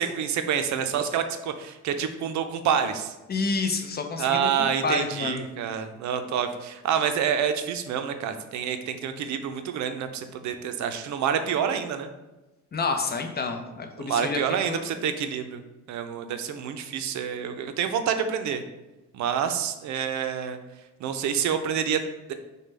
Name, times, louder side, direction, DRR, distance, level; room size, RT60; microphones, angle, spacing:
voice 1, 0.0-3.1 4.2-12.1 14.0-15.6 15.9-18.6 19.1-20.6 21.0-22.0 22.3-22.4, right 8 dB, 70° right, 8 dB, 0.5 m, -27 dB
voice 2, 3.3-5.5 12.7-14.4 14.7-14.8, left 4 dB, 35° left, 5 dB, 0.5 m, -29 dB
5.0 x 2.2 x 3.2 m, 1.0 s
cardioid pair, 90°, 30 cm